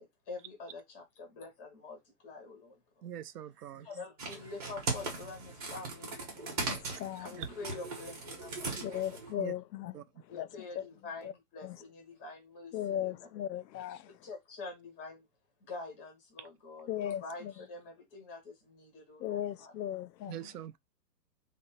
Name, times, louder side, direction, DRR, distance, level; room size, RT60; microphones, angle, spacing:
voice 1, 0.0-2.0 2.2-3.1 3.7-6.7 7.2-9.5 10.3-13.1 14.2-15.3 15.6-19.7, left 3 dB, 10° left, 0.5 m, -46 dB
voice 2, 3.0-4.0 7.4-7.5 9.4-9.5 9.9-10.0 16.4-16.5 20.3-20.8, right 10 dB, 70° right, 0.6 m, -43 dB
sound 1, 4.2-9.3, right 3 dB, 25° right, 0.8 m, -39 dB
voice 3, 6.7-7.3 8.8-10.9 11.2-11.3 11.6-11.8 12.7-14.1 16.9-17.5 19.2-20.4, left 11 dB, 90° left, 0.6 m, -37 dB
3.3 x 2.1 x 4.2 m
hypercardioid pair, 165°, 50 cm